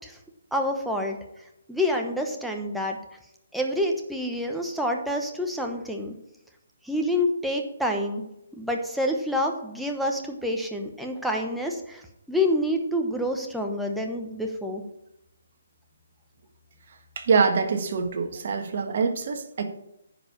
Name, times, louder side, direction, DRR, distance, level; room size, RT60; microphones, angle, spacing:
voice 1, 0.5-1.2 1.7-3.0 3.5-6.1 6.8-8.3 8.5-14.8, left 1 dB, ahead, 1 dB, 1.0 m, -27 dB
voice 2, 17.1-19.7, right 5 dB, 50° right, 5 dB, 1.5 m, -24 dB
10.0 x 4.9 x 7.2 m, 0.82 s
hypercardioid pair, 160°, 0 cm